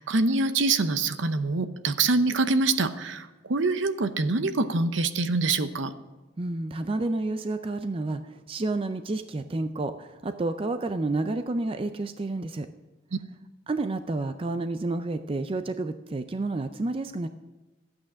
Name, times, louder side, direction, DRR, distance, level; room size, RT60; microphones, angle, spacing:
voice 1, 0.0-5.9, right 3 dB, 65° right, 10 dB, 0.8 m, -25 dB
voice 2, 6.4-12.7 13.7-17.3, right 2 dB, 25° right, 9 dB, 0.4 m, -30 dB
13.0 x 8.7 x 6.2 m, 1.2 s
head